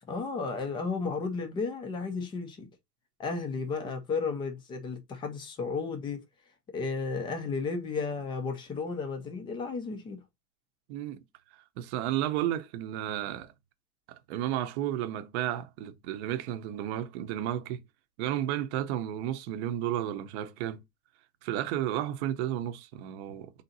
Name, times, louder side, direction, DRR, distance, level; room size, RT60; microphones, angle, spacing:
voice 1, 0.1-2.7 3.2-6.2 6.7-10.2, left 4 dB, 10° left, 0.4 m, -33 dB
voice 2, 11.8-13.5 14.3-17.8 18.2-20.8 21.4-23.6, right 12 dB, 45° right, 0.7 m, -32 dB
3.8 x 2.7 x 3.9 m
supercardioid pair, 145°, 47 cm